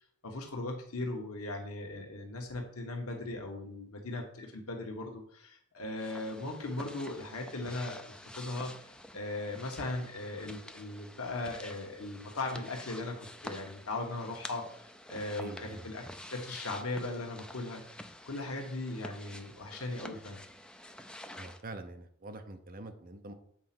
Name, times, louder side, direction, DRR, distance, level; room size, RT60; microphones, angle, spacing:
voice 1, 0.2-16.0 16.3-17.8 18.2-20.4, left 2 dB, 85° left, 2 dB, 1.2 m, -38 dB
sound 1, 6.0-21.6, left 1 dB, 5° left, 0.5 m, -49 dB
voice 2, 15.4-15.9 21.3-23.3, right 2 dB, 45° right, 7 dB, 0.8 m, -45 dB
7.4 x 4.2 x 5.9 m, 0.64 s
head